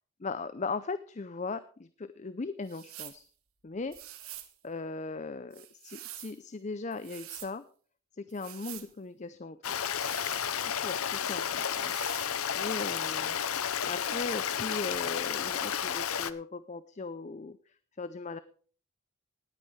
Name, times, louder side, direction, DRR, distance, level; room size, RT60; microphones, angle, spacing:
voice 1, 0.2-3.2 3.6-3.9 4.3-7.6 8.2-9.8 10.6-13.4 13.8-17.6 18.0-18.4, left 3 dB, 30° left, 13 dB, 0.5 m, -38 dB
sound 1, 2.7-3.2 3.9-4.5 5.5-6.4 6.9-7.5 8.3-8.9 9.9-10.9 11.7-12.3, right 13 dB, 75° right, 1.5 m, -46 dB
Stream, 9.6-16.3, left 8 dB, 75° left, 0.7 m, -32 dB
19.5 x 9.1 x 3.2 m, 0.43 s
head